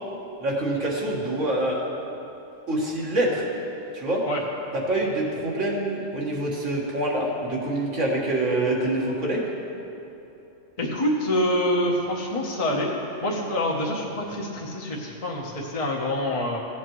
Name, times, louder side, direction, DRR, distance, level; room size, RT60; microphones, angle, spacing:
voice 1, 0.4-1.9 2.7-3.5 3.9-4.2 4.9-9.5, right 1 dB, 75° right, -3 dB, 2.0 m, -25 dB
voice 2, 10.8-12.9 13.2-16.6, left 1 dB, 30° left, -3 dB, 0.9 m, -26 dB
16.0 x 8.4 x 3.1 m, 2.9 s
omnidirectional pair, 1.3 m